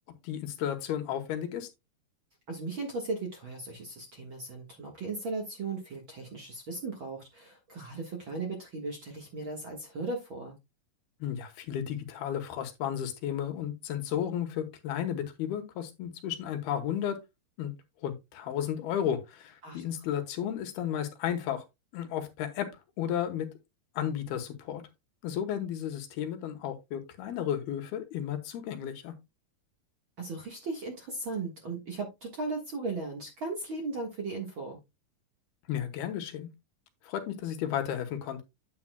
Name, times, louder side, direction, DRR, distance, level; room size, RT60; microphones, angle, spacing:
voice 1, 0.2-1.7 11.2-17.2 17.6-17.7 18.0-21.6 21.9-22.7 23.0-23.5 23.9-24.8 25.2-29.1 35.7-36.5 37.0-38.4, left 10 dB, 85° left, 3.2 m, -33 dB
voice 2, 2.5-10.6 19.6-19.8 30.2-34.8, right 3 dB, 50° right, 1.6 m, -37 dB
9.6 x 8.6 x 2.2 m
omnidirectional pair, 4.3 m